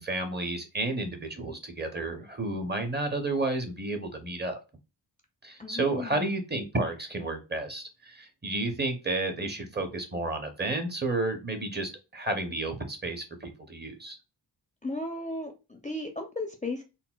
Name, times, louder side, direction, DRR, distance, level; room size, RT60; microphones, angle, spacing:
voice 1, 0.0-4.6 5.4-14.2, right 2 dB, 25° right, 5 dB, 0.6 m, -31 dB
voice 2, 5.6-6.4 14.8-16.8, left 2 dB, 15° left, 3 dB, 0.5 m, -35 dB
4.0 x 2.1 x 2.2 m, 0.29 s
wide cardioid pair, 105°, 44 cm